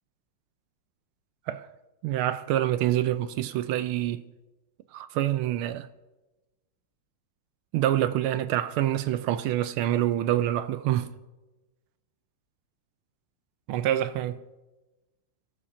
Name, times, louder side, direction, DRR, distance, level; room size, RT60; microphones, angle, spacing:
voice 1, 2.0-4.3 4.9-5.9 7.7-11.1 13.7-14.4, right 12 dB, 80° right, 1.4 m, -26 dB
24.5 x 14.0 x 2.6 m
omnidirectional pair, 2.4 m